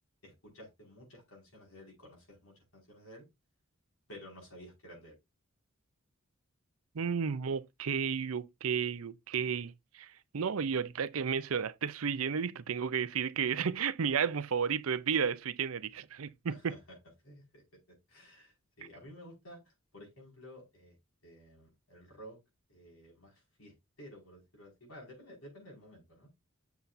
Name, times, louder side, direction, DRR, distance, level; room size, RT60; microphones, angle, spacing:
voice 1, 0.2-3.2 4.1-5.2 16.5-16.8 17.2-21.0 21.2-22.4 22.7-26.3, equal, 85° left, 5.4 m, -53 dB
voice 2, 6.9-16.7, right 6 dB, 80° right, 0.6 m, -33 dB
7.9 x 6.9 x 2.6 m
head